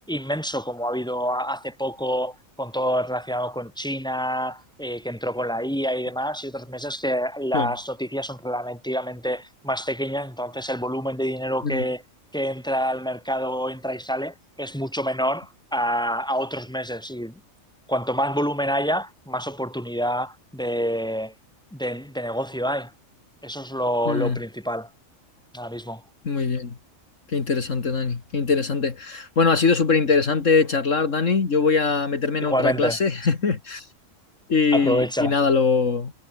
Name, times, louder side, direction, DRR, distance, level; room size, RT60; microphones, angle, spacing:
voice 1, 0.1-12.0 12.3-17.4 17.9-21.3 21.7-22.9 23.4-24.9 25.5-26.0 32.4-33.0 34.7-35.4, equal, 5° left, 5.9 m, -27 dB
voice 2, 24.1-24.4 26.2-26.7 27.3-33.9 34.5-36.1, left 4 dB, 65° left, 2.4 m, -22 dB
omnidirectional pair, 1.4 m